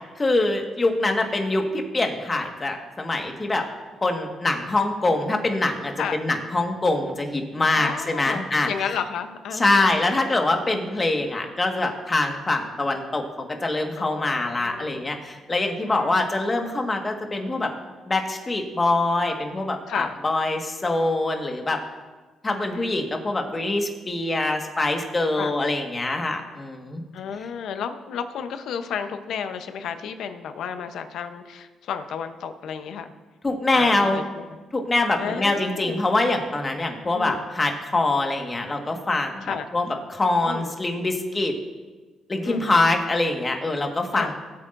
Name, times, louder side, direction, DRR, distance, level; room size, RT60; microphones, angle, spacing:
voice 1, 0.2-3.6 4.0-8.7 9.5-17.7 18.1-21.8 22.4-27.0 33.4-34.2 34.7-41.5 42.3-44.3, left 2 dB, 25° left, 3 dB, 1.6 m, -24 dB
voice 2, 7.7-10.2 14.0-15.2 15.8-16.2 19.9-20.1 22.6-22.9 25.4-25.5 27.1-33.1 33.8-34.4 35.2-36.1 37.1-37.4 39.4-39.7 40.5-40.7 42.4-42.8 44.1-44.3, left 7 dB, 75° left, 9 dB, 0.8 m, -32 dB
19.0 x 8.4 x 2.6 m, 1.3 s
cardioid pair, 90°, 0 cm